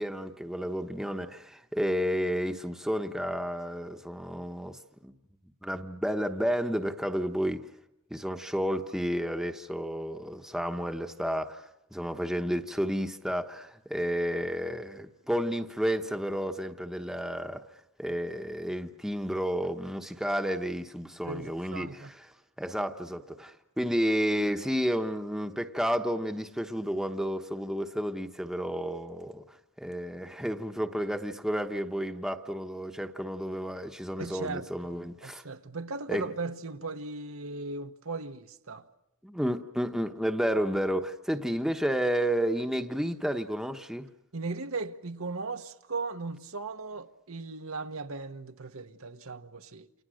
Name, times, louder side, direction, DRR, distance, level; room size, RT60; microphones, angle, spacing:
voice 1, 0.0-5.1 5.6-7.6 8.1-11.6 11.9-17.6 18.0-22.3 22.6-29.4 29.8-35.4 36.1-36.2 39.2-44.1, equal, ahead, 1.1 m, -31 dB
voice 2, 21.2-22.1 34.2-38.9 44.3-49.9, right 3 dB, 70° right, 1.1 m, -37 dB
29.0 x 27.5 x 6.5 m
head